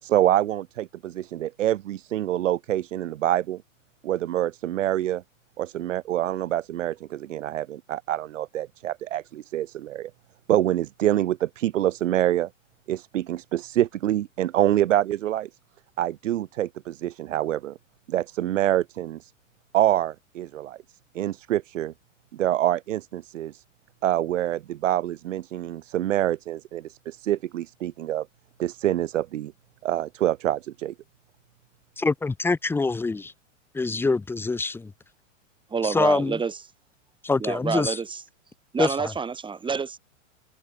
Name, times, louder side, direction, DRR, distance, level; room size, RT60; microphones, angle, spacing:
voice 1, 0.0-3.6 4.0-5.2 5.6-10.1 10.5-12.5 12.9-15.5 16.0-17.8 18.1-19.3 19.7-20.8 21.1-21.9 22.3-23.6 24.0-28.3 28.6-29.5 29.8-30.9, right 13 dB, 70° right, 2.6 m, -26 dB
voice 2, 32.0-33.3 33.7-34.9 35.8-36.4 37.2-38.0 38.8-39.1, left 3 dB, 5° left, 0.8 m, -25 dB
voice 3, 35.7-36.6 37.4-38.2 38.7-40.0, right 5 dB, 10° right, 3.9 m, -28 dB
hypercardioid pair, 130°, 39 cm